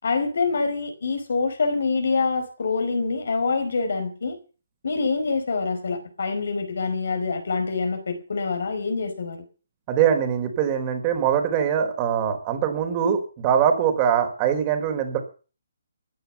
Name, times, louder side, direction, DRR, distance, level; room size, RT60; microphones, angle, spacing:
voice 1, 0.0-4.4 4.8-9.4, left 4 dB, 70° left, 7 dB, 4.9 m, -25 dB
voice 2, 9.9-15.2, right 8 dB, 25° right, 6 dB, 4.3 m, -22 dB
16.0 x 10.5 x 7.0 m, 0.36 s
hypercardioid pair, 150°, 0 cm